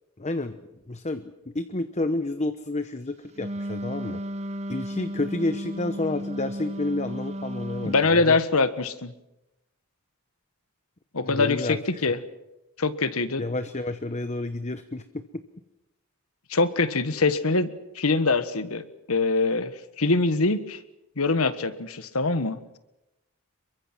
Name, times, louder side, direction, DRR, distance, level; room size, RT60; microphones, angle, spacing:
voice 1, 0.2-0.6 0.9-4.2 4.7-8.4 11.2-11.8 13.4-15.4, left 2 dB, 30° left, 10 dB, 1.0 m, -30 dB
Wind instrument woodwind instrument, 3.3-8.1, equal, 30° right, 0.9 m, -34 dB
voice 2, 7.8-9.1 11.1-12.2 12.8-13.4 16.5-19.7 20.0-20.8 21.2-22.8, left 3 dB, 80° left, 12 dB, 1.5 m, -24 dB
28.0 x 23.5 x 6.1 m, 0.92 s
head